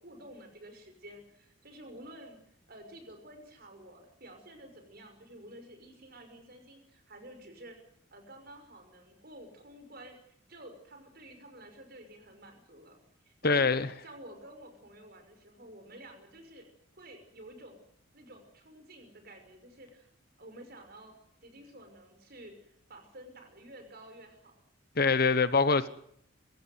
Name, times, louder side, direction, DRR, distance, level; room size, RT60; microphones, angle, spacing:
voice 1, 0.0-2.4 2.7-7.8 8.1-13.0 13.3-13.8 14.0-16.6 16.9-17.8 18.1-20.1 20.4-21.1 21.4-24.6, right 1 dB, 50° right, 5.8 m, -51 dB
voice 2, 13.4-13.9 25.0-25.9, left 4 dB, 45° left, 1.0 m, -24 dB
23.5 x 16.5 x 9.6 m
head